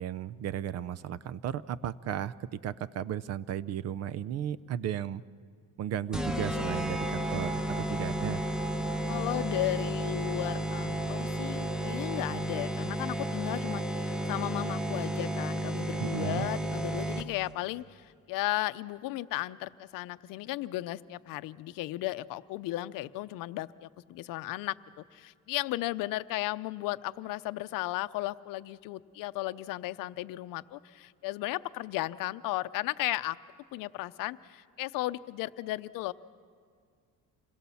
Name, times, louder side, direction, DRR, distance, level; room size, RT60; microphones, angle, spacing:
voice 1, 0.0-5.2 5.8-8.4 16.0-16.5, right 10 dB, 50° right, 18 dB, 0.5 m, -35 dB
sound 1, 6.1-17.5, right 1 dB, ahead, 0.6 m, -32 dB
voice 2, 9.1-33.4 33.7-36.1, left 17 dB, 70° left, 13 dB, 0.7 m, -35 dB
27.0 x 21.5 x 7.1 m, 2.1 s
cardioid pair, 160°, 34 cm